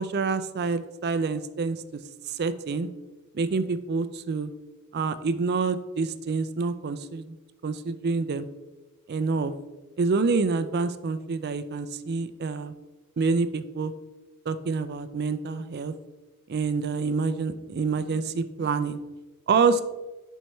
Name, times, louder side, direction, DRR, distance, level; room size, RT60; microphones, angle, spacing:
voice 1, 0.0-1.8 2.3-2.9 3.3-4.5 4.9-7.3 7.6-8.5 9.1-9.5 10.0-12.7 13.2-13.9 14.5-15.9 16.5-19.0 19.5-19.8, right 4 dB, 50° right, 12 dB, 0.4 m, -27 dB
10.5 x 4.5 x 3.1 m, 1.1 s
head